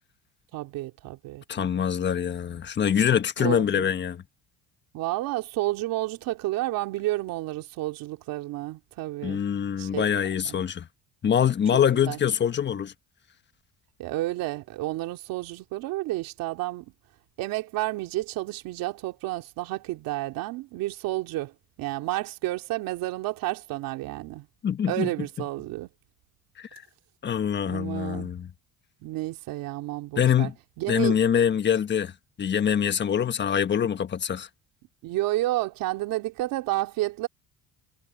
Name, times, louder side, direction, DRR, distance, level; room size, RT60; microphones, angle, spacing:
voice 1, 0.5-1.9 3.4-3.9 4.9-9.4 9.8-10.1 10.4-10.6 11.9-12.2 14.0-16.9 17.4-24.5 24.9-25.9 27.6-28.3 29.0-30.5 30.8-31.2 35.0-37.3, right 17 dB, 80° right, 2.9 m, -31 dB
voice 2, 1.5-4.2 9.2-10.9 11.2-12.9 24.6-25.1 26.6-26.8 27.2-28.5 30.2-30.5 30.9-32.1 32.4-34.5, left 8 dB, 30° left, 1.3 m, -24 dB
cardioid pair, 130°, 34 cm